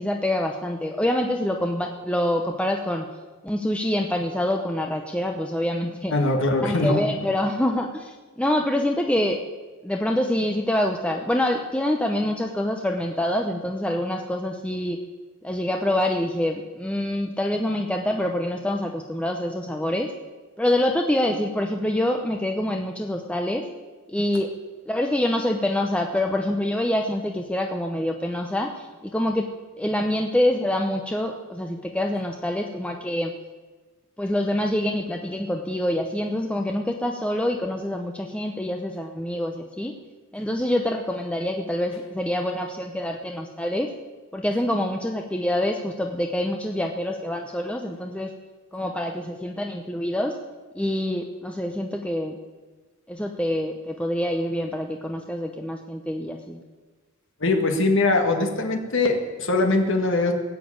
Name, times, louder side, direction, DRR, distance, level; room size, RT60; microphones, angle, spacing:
voice 1, 0.0-3.1 3.4-6.1 6.6-9.4 9.8-15.0 15.4-20.1 20.6-23.7 24.1-24.5 24.9-29.5 29.8-33.3 34.2-39.9 40.3-43.9 44.3-48.3 48.7-50.4 50.7-52.4 53.1-56.6, left 1 dB, 5° left, 3 dB, 0.8 m, -26 dB
voice 2, 6.1-7.0 57.4-60.3, left 2 dB, 65° left, 4 dB, 1.8 m, -22 dB
19.0 x 7.7 x 8.8 m, 1.3 s
head